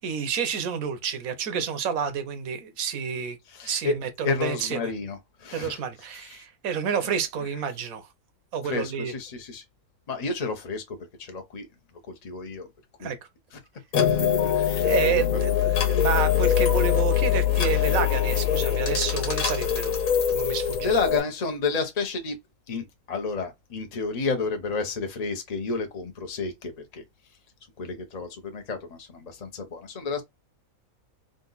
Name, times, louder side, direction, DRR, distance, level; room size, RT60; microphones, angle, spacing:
voice 1, 0.0-3.4 3.6-4.9 5.5-8.1 8.5-9.1 13.0-13.2 14.8-19.9 20.3-20.9, right 7 dB, 70° right, 1.2 m, -29 dB
voice 2, 3.5-4.0 4.2-5.8 6.2-6.4 8.7-9.6 10.1-11.7 12.1-12.7 13.0-13.2 13.5-13.6 14.2-14.9 20.5-22.4 22.7-27.0 27.8-30.2, left 4 dB, 35° left, 0.8 m, -31 dB
sound 1, 13.9-21.2, left 9 dB, 70° left, 1.6 m, -23 dB
3.9 x 2.5 x 3.9 m
omnidirectional pair, 1.5 m